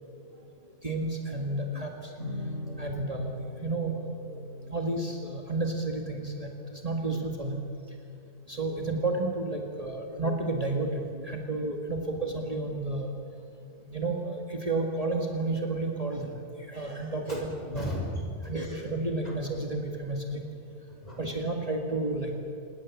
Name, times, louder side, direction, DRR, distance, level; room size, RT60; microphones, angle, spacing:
voice 1, 0.0-0.4 17.3-18.5 19.2-19.4 20.9-21.2, left 1 dB, 35° left, -1 dB, 6.3 m, -36 dB
voice 2, 0.8-1.9 2.8-3.3 3.6-3.9 4.7-6.5 6.8-7.6 8.5-13.1 13.9-16.2 16.7-17.4 17.8-17.9 18.5-20.4 21.2-22.4, right 2 dB, 30° right, 1 dB, 2.0 m, -31 dB
sound 1, 2.2-9.4, left 1 dB, 80° right, 6.3 m, -42 dB
27.0 x 21.0 x 7.4 m, 2.5 s
omnidirectional pair, 1.2 m